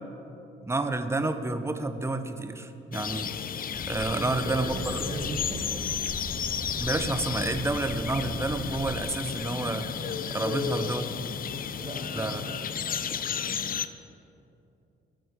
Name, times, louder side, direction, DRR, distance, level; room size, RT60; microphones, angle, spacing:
voice 1, 0.6-3.3 3.9-5.0 6.8-9.9 10.3-11.0 12.1-12.4, right 2 dB, 15° right, 8 dB, 0.9 m, -29 dB
sound 1, 2.9-13.9, left 8 dB, 45° left, 0.6 m, -33 dB
sound 2, 3.7-9.0, equal, 30° left, 1.9 m, -40 dB
voice 2, 4.1-5.8 6.7-6.9 10.3-11.0 11.8-13.2, right 2 dB, 30° right, 3 dB, 1.9 m, -39 dB
19.0 x 7.8 x 5.2 m, 2.7 s
cardioid pair, 90°, 20 cm